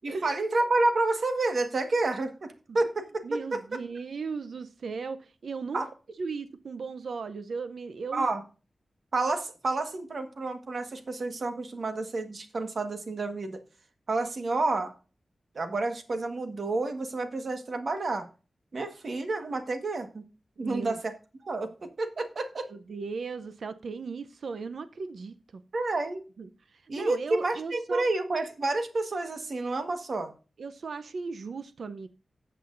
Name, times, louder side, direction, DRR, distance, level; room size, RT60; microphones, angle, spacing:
voice 1, 0.0-3.6 5.7-5.9 8.1-8.4 9.1-13.6 14.1-14.9 15.5-18.3 18.7-20.2 20.6-21.1 21.4-22.7 25.7-26.2 26.9-30.3, right 2 dB, 60° right, 1.5 m, -29 dB
voice 2, 3.2-5.8 6.2-8.3 20.6-21.0 22.7-25.4 26.4-28.0 30.6-32.1, right 4 dB, 75° right, 0.7 m, -37 dB
14.5 x 7.6 x 2.6 m
wide cardioid pair, 100°, 0 cm